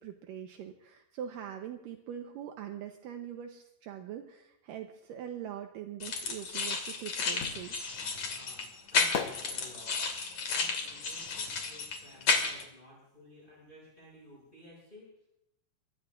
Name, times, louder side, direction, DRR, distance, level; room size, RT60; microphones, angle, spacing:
voice 1, 0.0-7.8, right 9 dB, 75° right, 4 dB, 2.4 m, -42 dB
sound 1, 6.0-12.6, left 4 dB, 50° left, 3.1 m, -32 dB
sound 2, 6.5-12.4 12.6-14.2 14.5-14.6, left 7 dB, 70° left, 1.4 m, -42 dB
voice 2, 8.1-15.3, left 1 dB, 15° left, -4 dB, 6.7 m, -55 dB
24.0 x 20.5 x 2.5 m, 0.81 s
omnidirectional pair, 4.1 m